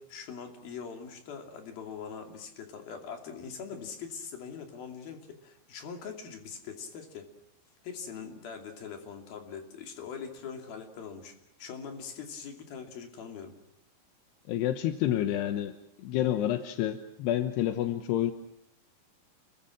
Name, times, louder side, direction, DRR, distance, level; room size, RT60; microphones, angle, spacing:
voice 1, 0.0-7.3 7.8-13.5, left 6 dB, 65° left, 4 dB, 4.5 m, -42 dB
voice 2, 14.5-18.3, left 12 dB, 85° left, 8 dB, 3.2 m, -29 dB
29.5 x 23.0 x 6.1 m, 0.74 s
omnidirectional pair, 4.6 m